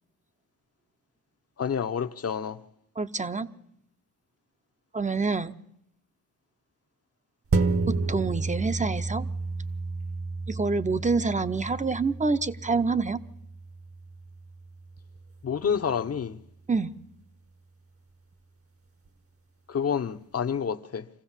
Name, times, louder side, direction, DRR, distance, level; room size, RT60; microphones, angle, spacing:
voice 1, 1.6-2.6 15.4-16.4 19.7-21.1, left 7 dB, 40° left, 0.9 m, -28 dB
voice 2, 3.0-3.5 4.9-5.6 7.9-9.3 10.5-13.2 16.7-16.9, right 4 dB, 20° right, 0.7 m, -27 dB
sound 1, 7.5-16.3 16.8-16.9, right 3 dB, 40° right, 1.1 m, -32 dB
25.0 x 15.0 x 7.3 m
cardioid pair, 80°, 36 cm